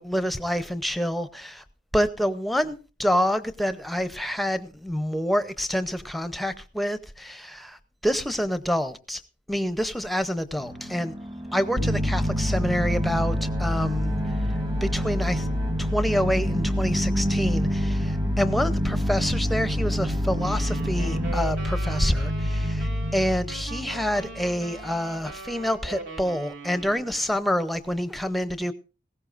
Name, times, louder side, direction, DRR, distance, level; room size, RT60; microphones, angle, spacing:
voice 1, 0.0-1.6 1.9-9.2 9.5-11.1 11.5-14.2 14.8-15.5 15.8-28.7, equal, ahead, 0.6 m, -27 dB
sound 1, 10.6-21.4, equal, 20° right, 1.2 m, -32 dB
sound 2, 11.8-24.9, equal, 55° right, 1.1 m, -27 dB
sound 3, 20.4-27.2, right 3 dB, 75° right, 3.3 m, -40 dB
19.0 x 16.5 x 2.5 m
head